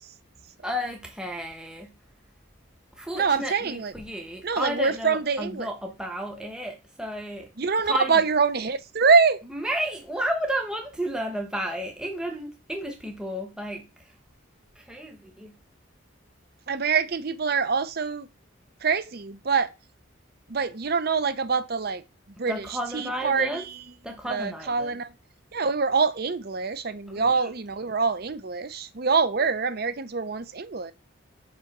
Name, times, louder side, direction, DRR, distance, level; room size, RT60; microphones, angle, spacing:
voice 1, 0.6-2.0 2.9-7.5 7.8-8.2 9.5-14.1 14.7-15.6 22.5-23.7 24.0-24.9 27.1-27.5, equal, 5° right, 1.0 m, -32 dB
voice 2, 3.1-3.9 4.4-5.7 7.6-9.4 16.7-18.3 18.8-19.7 20.5-22.0 22.4-22.7 22.9-23.7 24.2-25.1 25.5-30.9, right 5 dB, 45° right, 0.6 m, -25 dB
5.5 x 4.9 x 6.0 m
head